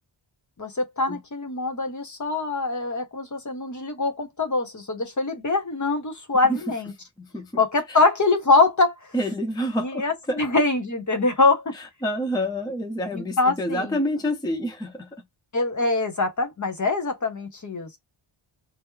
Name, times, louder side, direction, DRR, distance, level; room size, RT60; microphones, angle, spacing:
voice 1, 0.6-6.9 7.6-8.9 9.8-11.7 13.1-14.0 15.5-18.0, left 3 dB, 35° left, 1.0 m, -23 dB
voice 2, 7.2-7.6 7.9-8.0 9.1-10.4 11.7-15.2, equal, 10° left, 0.6 m, -28 dB
3.0 x 2.0 x 3.5 m
wide cardioid pair, 180°, 49 cm